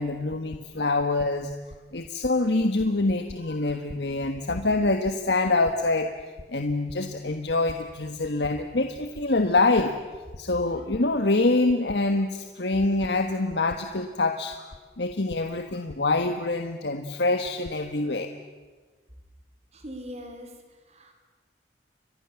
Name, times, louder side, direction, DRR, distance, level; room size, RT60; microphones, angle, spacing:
voice 1, 0.0-1.5 1.9-6.1 6.5-9.9 10.3-18.3, left 2 dB, 70° left, 6 dB, 1.4 m, -25 dB
voice 2, 19.7-20.6 20.9-21.1, equal, 40° right, 5 dB, 4.5 m, -40 dB
30.0 x 24.0 x 7.1 m, 1.4 s
head